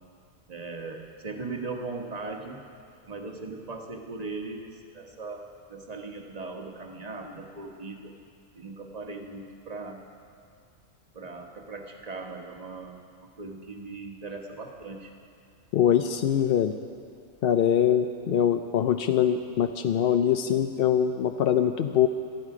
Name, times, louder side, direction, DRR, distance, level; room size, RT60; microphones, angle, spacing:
voice 1, 0.5-2.7 3.1-8.2 8.5-10.1 11.1-13.1 13.4-15.1, right 3 dB, 30° right, 2 dB, 1.3 m, -39 dB
voice 2, 15.7-16.7 17.4-22.1, left 9 dB, 65° left, 7 dB, 0.6 m, -23 dB
19.5 x 13.0 x 4.9 m, 2.4 s
omnidirectional pair, 1.4 m